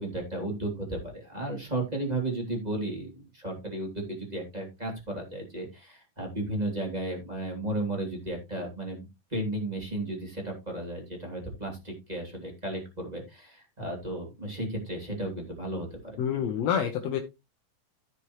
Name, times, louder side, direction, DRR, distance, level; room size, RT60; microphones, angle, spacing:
voice 1, 0.0-16.2, right 1 dB, 15° right, 0 dB, 2.4 m, -34 dB
voice 2, 16.2-17.2, left 8 dB, 65° left, 4 dB, 1.8 m, -27 dB
14.5 x 6.2 x 3.0 m, 0.25 s
omnidirectional pair, 3.9 m